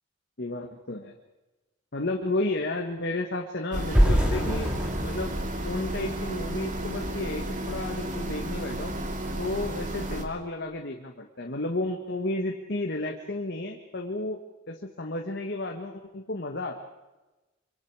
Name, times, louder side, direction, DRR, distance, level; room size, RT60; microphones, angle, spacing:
voice 1, 0.4-1.1 1.9-4.7 5.0-5.3 5.6-9.0 9.4-16.8, left 2 dB, 55° left, 2 dB, 1.5 m, -32 dB
sound 1, 3.7-10.3, right 1 dB, 40° right, 2.4 m, -33 dB
sound 2, 3.9-6.9, equal, 5° right, 2.2 m, -26 dB
25.5 x 25.0 x 4.9 m, 1.1 s
head